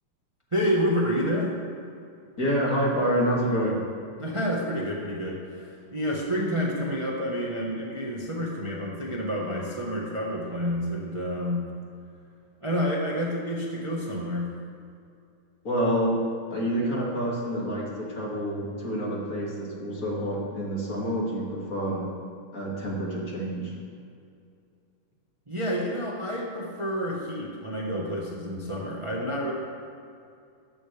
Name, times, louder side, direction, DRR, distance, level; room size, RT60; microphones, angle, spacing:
voice 1, 0.5-1.5 4.2-11.6 12.6-14.5 25.5-29.5, equal, 15° right, -3 dB, 1.3 m, -29 dB
voice 2, 2.4-3.8 15.6-16.2 16.5-22.1 22.5-23.7, equal, 45° left, -4 dB, 2.8 m, -27 dB
14.5 x 14.0 x 3.5 m, 2.4 s
omnidirectional pair, 2.2 m